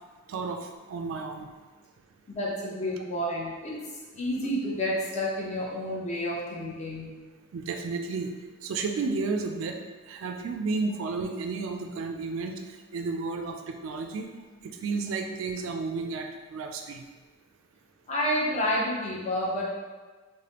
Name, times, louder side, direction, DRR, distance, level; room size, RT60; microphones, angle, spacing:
voice 1, 0.3-1.5 7.5-8.3 8.6-9.7 10.1-14.3 14.6-17.0, right 4 dB, 75° right, 4 dB, 0.3 m, -32 dB
voice 2, 2.3-3.7 4.2-7.1 18.1-19.6, equal, 35° left, -5 dB, 0.8 m, -29 dB
4.8 x 2.2 x 2.8 m, 1.3 s
head